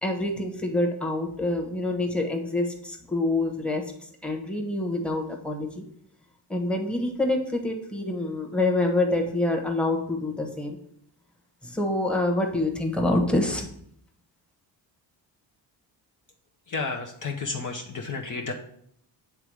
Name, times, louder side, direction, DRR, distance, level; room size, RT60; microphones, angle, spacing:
voice 1, 0.0-3.8 4.2-5.8 6.5-10.8 11.6-13.6, left 2 dB, ahead, 2 dB, 1.1 m, -26 dB
voice 2, 16.7-18.5, left 4 dB, 45° left, 3 dB, 0.7 m, -32 dB
7.9 x 3.6 x 4.8 m, 0.68 s
cardioid pair, 100°, 45 cm